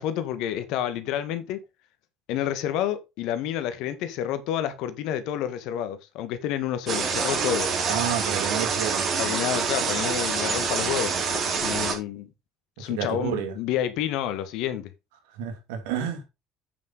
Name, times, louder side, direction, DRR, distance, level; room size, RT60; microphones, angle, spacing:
voice 1, 0.0-1.6 2.3-7.7 9.2-12.3 12.8-14.9, left 11 dB, 70° left, 1.7 m, -29 dB
sound 1, 6.9-12.0, right 5 dB, 50° right, 4.2 m, -26 dB
voice 2, 7.9-9.1 12.8-13.5 15.3-16.2, right 8 dB, 75° right, 2.7 m, -30 dB
8.7 x 7.4 x 4.1 m
hypercardioid pair, 60°, 0 cm